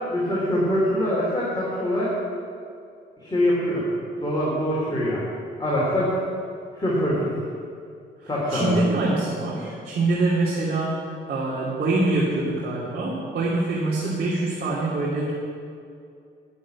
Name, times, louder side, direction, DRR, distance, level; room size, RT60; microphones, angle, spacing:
voice 1, 0.0-2.1 3.2-3.8 4.2-5.3 5.6-6.2 6.8-7.3 8.3-8.7, equal, 20° left, -7 dB, 3.7 m, -24 dB
voice 2, 8.5-11.0 11.3-15.3, right 2 dB, 55° right, -6 dB, 2.7 m, -24 dB
11.0 x 7.4 x 8.3 m, 2.4 s
cardioid pair, 90°, 20 cm